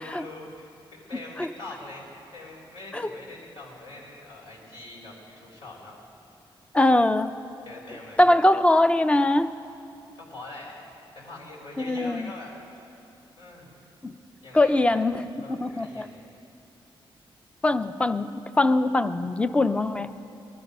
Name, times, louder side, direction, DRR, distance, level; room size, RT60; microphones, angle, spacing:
voice 1, 0.0-6.0 7.6-8.2 10.1-13.0 13.4-13.8 14.4-15.0 15.4-16.3, left 2 dB, 85° left, -4 dB, 4.1 m, -43 dB
voice 2, 6.7-7.3 8.2-9.5 11.8-12.3 14.0-14.2 14.5-16.1 17.6-20.1, left 2 dB, 15° left, 11 dB, 0.4 m, -22 dB
19.5 x 12.5 x 5.5 m, 2.6 s
wide cardioid pair, 145°, 9 cm